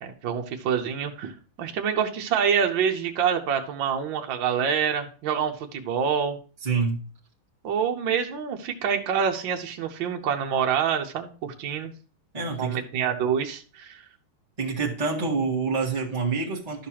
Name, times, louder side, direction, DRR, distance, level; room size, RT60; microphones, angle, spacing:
voice 1, 0.0-6.4 7.6-11.9 12.6-14.0, right 7 dB, 70° right, 3 dB, 1.6 m, -26 dB
voice 2, 6.6-7.0 12.3-12.8 14.6-16.9, right 4 dB, 20° right, -5 dB, 1.2 m, -27 dB
12.0 x 6.6 x 2.9 m, 0.37 s
omnidirectional pair, 2.3 m